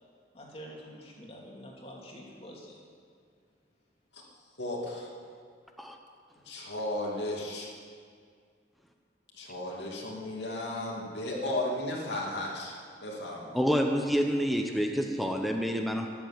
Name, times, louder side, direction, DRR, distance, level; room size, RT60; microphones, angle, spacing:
voice 1, 0.3-2.8, equal, 30° left, -2 dB, 2.6 m, -46 dB
voice 2, 4.6-5.1 6.5-7.7 9.3-12.7 13.0-13.5, left 1 dB, 70° left, -3 dB, 2.6 m, -34 dB
voice 3, 13.5-16.1, equal, ahead, 3 dB, 0.9 m, -28 dB
14.0 x 11.0 x 7.3 m, 2.1 s
head